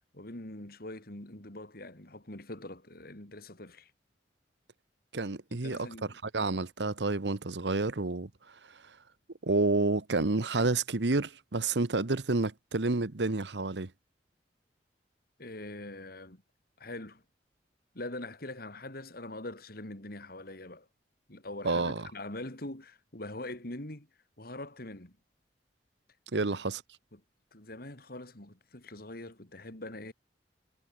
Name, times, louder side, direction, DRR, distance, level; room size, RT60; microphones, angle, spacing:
voice 1, 0.1-3.9 5.5-6.2 10.2-10.3 15.4-16.4 16.8-17.2 17.9-20.9 21.3-24.1 24.4-25.2 26.4-26.5 27.1-27.2 27.5-30.1, left 2 dB, 60° left, 3.4 m, -43 dB
voice 2, 5.1-5.9 6.2-8.3 9.4-13.9 21.6-22.1 26.3-26.8, right 3 dB, 75° right, 1.1 m, -29 dB
head